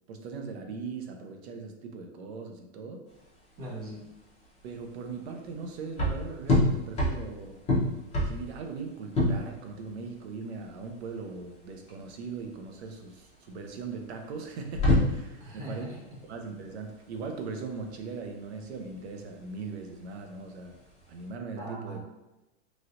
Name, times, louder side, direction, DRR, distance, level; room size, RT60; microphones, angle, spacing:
voice 1, 0.1-3.1 4.6-7.6 8.2-15.9 16.3-20.8 21.1-22.0, right 4 dB, 60° right, 4 dB, 0.6 m, -39 dB
sound 1, 3.1-21.3, left 1 dB, 15° left, 0.9 m, -30 dB
voice 2, 3.6-4.0 15.4-16.0 21.6-22.0, right 1 dB, 25° right, -4 dB, 0.9 m, -39 dB
3.1 x 2.8 x 2.6 m, 0.99 s
hypercardioid pair, 140°, 36 cm